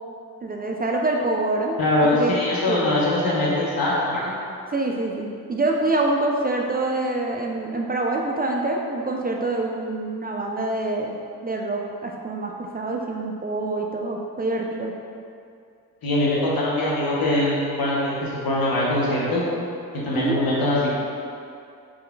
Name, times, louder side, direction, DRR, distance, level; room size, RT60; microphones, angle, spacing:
voice 1, 0.4-1.8 2.1-2.3 2.7-2.8 4.7-11.2 11.4-14.9 20.1-20.4, right 2 dB, 25° right, 0 dB, 0.3 m, -25 dB
voice 2, 1.8-4.3 16.0-19.4 19.9-20.9, left 1 dB, 75° left, -5 dB, 0.9 m, -22 dB
3.6 x 3.4 x 2.2 m, 2.4 s
supercardioid pair, 45°, 36 cm